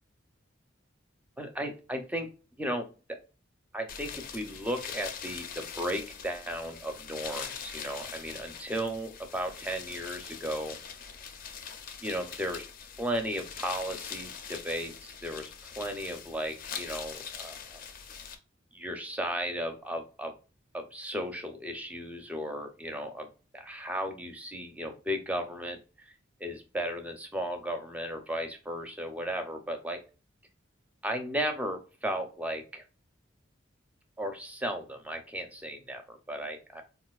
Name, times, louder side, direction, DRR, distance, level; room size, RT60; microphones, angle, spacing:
voice 1, 1.4-2.3 2.6-2.9 3.7-10.8 12.0-12.7 13.0-17.8 18.7-20.3 20.7-23.3 23.5-26.1 26.4-30.0 31.0-32.8 34.2-36.8, equal, 5° right, 5 dB, 0.5 m, -35 dB
sound 1, 3.9-18.4, left 7 dB, 45° left, 0.5 m, -43 dB
4.1 x 2.5 x 2.3 m, 0.33 s
head